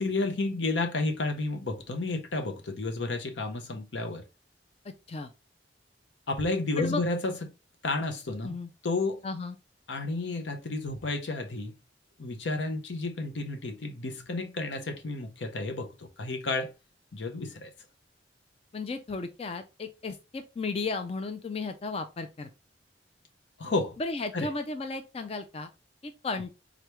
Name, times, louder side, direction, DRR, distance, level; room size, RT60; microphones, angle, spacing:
voice 1, 0.0-4.2 6.3-7.4 7.8-8.5 8.8-9.2 9.9-11.7 12.2-16.7 17.1-17.7 23.6-24.0 24.3-24.5, left 2 dB, 85° left, 0.8 m, -31 dB
voice 2, 4.8-5.3 6.8-7.0 8.4-8.7 9.2-9.6 18.7-22.5 24.0-25.7 26.0-26.5, left 3 dB, 35° left, 0.4 m, -34 dB
3.7 x 3.4 x 3.0 m
head